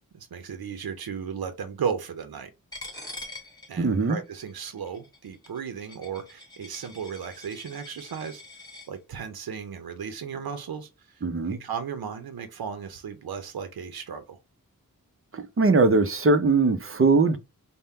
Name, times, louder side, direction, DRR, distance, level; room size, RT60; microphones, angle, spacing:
voice 1, 0.1-2.5 3.7-8.4 8.9-14.4, right 7 dB, 80° right, 0.6 m, -35 dB
Coin (dropping), 2.7-8.9, left 2 dB, 10° left, 1.4 m, -44 dB
voice 2, 3.8-4.2 11.2-11.6 15.3-17.4, right 3 dB, 40° right, 0.6 m, -21 dB
3.5 x 2.1 x 4.2 m
wide cardioid pair, 75°, 36 cm